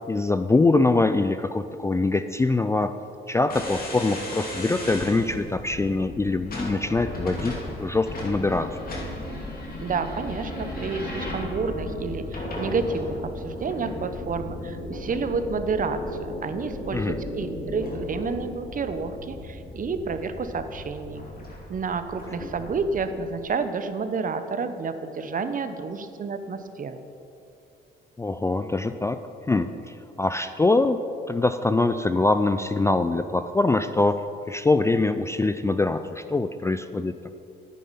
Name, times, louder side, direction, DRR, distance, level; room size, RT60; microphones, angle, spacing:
voice 1, 0.1-3.0 3.3-8.8 16.9-17.2 22.4-22.5 28.2-29.2 29.5-31.0 31.3-37.4, left 2 dB, 15° left, 10 dB, 0.3 m, -23 dB
sound 1, 3.5-23.2, left 1 dB, 45° left, 2.5 m, -36 dB
voice 2, 9.8-13.2 13.4-21.3 21.7-27.0, right 4 dB, 45° right, 10 dB, 0.8 m, -30 dB
9.5 x 9.3 x 5.6 m, 2.7 s
cardioid pair, 90°, 20 cm